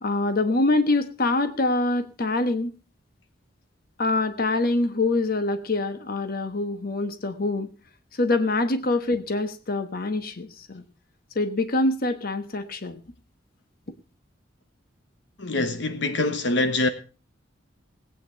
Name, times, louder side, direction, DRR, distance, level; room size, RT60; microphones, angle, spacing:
voice 1, 0.0-2.7 4.0-7.7 8.1-10.8 11.3-13.0, left 2 dB, 50° left, 1.2 m, -25 dB
voice 2, 15.4-16.9, left 2 dB, 70° left, 1.1 m, -24 dB
18.5 x 8.9 x 4.4 m
head